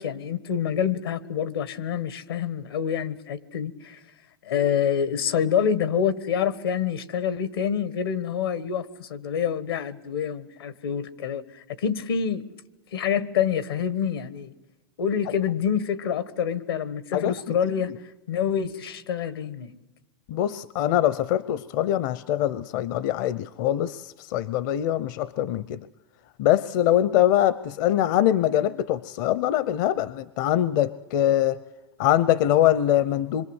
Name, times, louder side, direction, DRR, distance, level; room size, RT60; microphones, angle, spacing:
voice 1, 0.0-4.0 4.4-11.4 11.8-12.4 12.9-14.5 15.0-17.9 18.3-19.7, left 8 dB, 85° left, 1.5 m, -27 dB
voice 2, 20.3-25.8 26.4-31.6 32.0-33.5, left 12 dB, 55° left, 0.8 m, -23 dB
26.0 x 23.5 x 8.1 m
hypercardioid pair, 120°, 12 cm